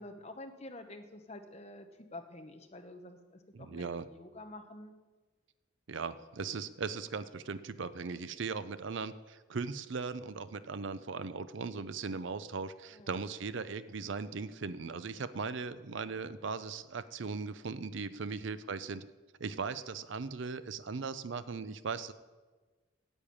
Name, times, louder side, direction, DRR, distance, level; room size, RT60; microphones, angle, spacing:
voice 1, 0.0-5.0 11.1-11.3 12.9-13.2, left 1 dB, 30° left, 6 dB, 1.0 m, -49 dB
voice 2, 3.5-4.1 5.9-19.0 19.4-22.1, right 4 dB, 60° right, 14 dB, 0.5 m, -38 dB
9.8 x 9.2 x 8.6 m, 1.3 s
head